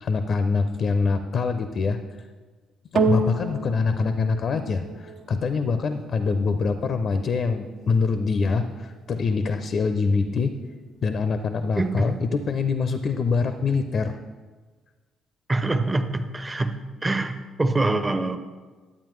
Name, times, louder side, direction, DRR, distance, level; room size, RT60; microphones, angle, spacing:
voice 1, 0.0-2.0 2.9-10.5 11.0-14.2, left 4 dB, 50° left, 9 dB, 0.6 m, -24 dB
sound 1, 3.0-11.5 12.2-12.3, right 3 dB, 50° right, 0.7 m, -32 dB
voice 2, 11.8-12.2 15.5-16.7 17.0-18.4, right 2 dB, 20° right, 8 dB, 0.8 m, -24 dB
12.0 x 8.6 x 3.2 m, 1.4 s
figure-of-eight pair, 45°, 0 cm